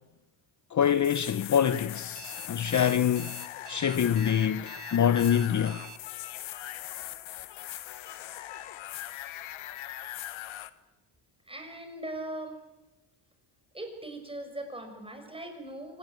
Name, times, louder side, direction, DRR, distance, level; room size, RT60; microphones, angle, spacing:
voice 1, 0.7-3.4 3.7-5.8, left 9 dB, 40° left, 0.8 m, -25 dB
sound 1, 0.8-10.7, left 14 dB, 80° left, 1.4 m, -40 dB
Alarm, 2.1-6.0, right 12 dB, 55° right, 1.7 m, -47 dB
Speech, 5.1-7.8 8.0-9.0 9.3-10.1, left 10 dB, 60° left, 2.2 m, -51 dB
voice 2, 11.4-12.6 13.7-16.0, right 1 dB, 10° right, 6.0 m, -40 dB
25.5 x 19.0 x 9.2 m
cardioid pair, 100°, 47 cm